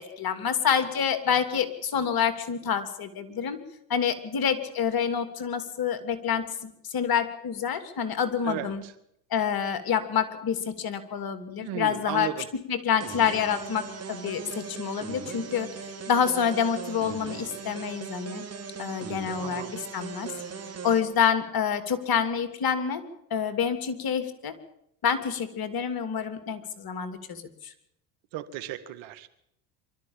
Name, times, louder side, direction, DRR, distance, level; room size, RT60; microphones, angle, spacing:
voice 1, 0.0-3.6 3.9-8.8 9.3-15.7 16.1-18.4 18.8-20.3 20.8-23.0 23.3-24.5 25.0-27.7, left 7 dB, 45° left, 11 dB, 3.0 m, -27 dB
voice 2, 8.4-8.9 11.6-12.5 19.4-19.7 28.3-29.3, right 12 dB, 65° right, 13 dB, 2.0 m, -35 dB
sound 1, 13.0-21.0, right 6 dB, 30° right, 4.0 m, -39 dB
24.5 x 13.0 x 8.9 m, 0.76 s
supercardioid pair, 85°, 48 cm